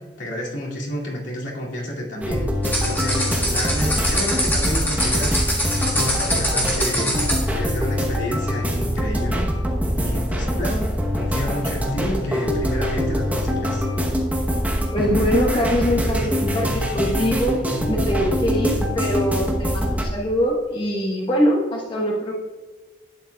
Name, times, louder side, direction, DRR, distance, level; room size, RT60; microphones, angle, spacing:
voice 1, 0.0-2.5 2.8-5.4 5.8-7.1 7.5-9.5 9.9-13.9, equal, 75° left, -4 dB, 2.4 m, -30 dB
sound 1, 2.2-20.0, equal, 10° right, 1.0 m, -24 dB
sound 2, 2.6-7.5, equal, 10° left, 1.6 m, -24 dB
voice 2, 14.9-17.6 17.9-22.3, equal, 25° left, -3 dB, 1.2 m, -23 dB
11.5 x 9.1 x 2.3 m, 1.3 s
head